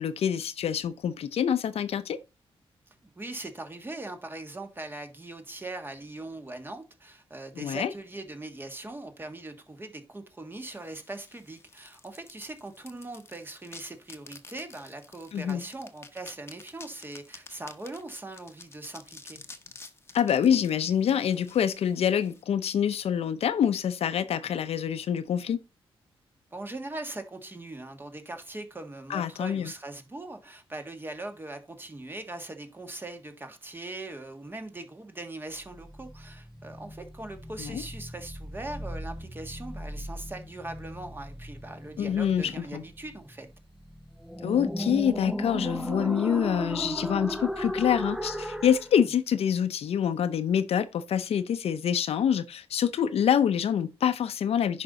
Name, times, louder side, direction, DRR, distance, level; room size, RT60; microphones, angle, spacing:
voice 1, 0.0-2.2 7.6-7.9 15.3-15.6 20.1-25.6 29.1-29.7 37.6-37.8 42.0-42.8 44.4-54.8, left 8 dB, 85° left, 0.7 m, -26 dB
voice 2, 3.1-19.4 26.5-43.5 49.0-49.1, right 2 dB, 20° right, 1.5 m, -40 dB
sound 1, 10.5-22.4, left 3 dB, 25° left, 1.0 m, -50 dB
sound 2, 35.6-48.9, equal, 5° right, 0.7 m, -36 dB
10.0 x 5.4 x 4.0 m
wide cardioid pair, 125°, 10 cm